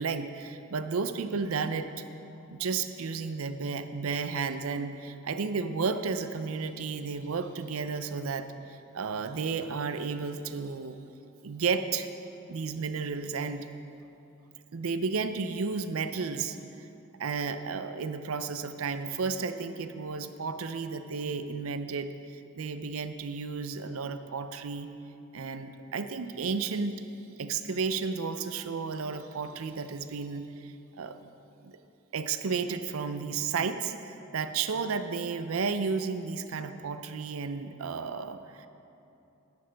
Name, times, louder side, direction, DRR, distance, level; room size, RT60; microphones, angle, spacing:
voice 1, 0.0-1.9 2.5-11.0 11.4-12.1 12.5-13.7 14.7-16.9 17.2-24.9 25.3-27.0 27.4-31.2 31.6-31.7 32.1-38.7, right 5 dB, 85° right, 10 dB, 0.5 m, -33 dB
10.5 x 10.5 x 3.4 m, 2.8 s
head